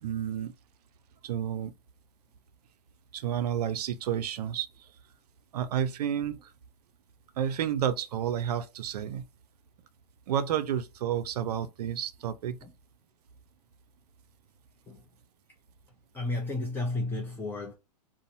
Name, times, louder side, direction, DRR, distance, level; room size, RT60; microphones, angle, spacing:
voice 1, 0.0-0.5 1.2-1.7 3.1-4.7 5.5-6.4 7.4-9.2 10.3-12.6, right 9 dB, 70° right, 0.4 m, -30 dB
voice 2, 16.1-17.7, left 2 dB, 10° left, 0.4 m, -33 dB
2.6 x 2.0 x 2.6 m
hypercardioid pair, 120°, 21 cm